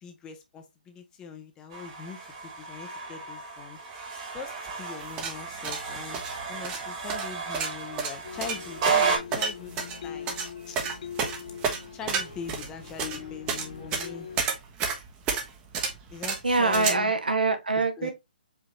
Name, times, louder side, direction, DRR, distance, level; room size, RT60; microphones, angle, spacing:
voice 1, 0.0-3.8 4.3-6.2 6.5-9.7 10.0-10.4 10.7-10.8 11.9-13.5 13.8-14.3 16.1-17.1 17.8-18.1, left 6 dB, 15° left, 0.6 m, -42 dB
sound 1, 1.7-9.2, right 5 dB, 35° right, 1.5 m, -32 dB
sound 2, 5.0-16.9, right 5 dB, 20° right, 0.8 m, -31 dB
sound 3, 8.2-14.4, left 7 dB, 50° left, 0.6 m, -41 dB
voice 2, 16.4-18.1, right 3 dB, 70° right, 1.0 m, -24 dB
4.8 x 2.9 x 2.9 m
figure-of-eight pair, 135°, 5 cm